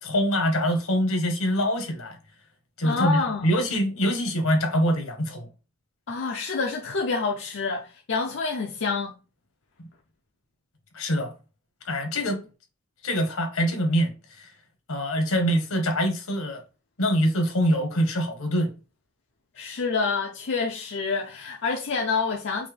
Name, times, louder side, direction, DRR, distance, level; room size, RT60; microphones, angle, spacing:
voice 1, 0.0-2.2 2.8-5.5 10.9-11.3 11.8-12.4 13.0-14.5 14.9-16.6 17.0-18.7, equal, 75° left, 1.3 m, -24 dB
voice 2, 2.8-3.5 6.1-9.1 19.6-22.7, left 4 dB, 55° left, 0.6 m, -27 dB
5.6 x 2.8 x 3.3 m
head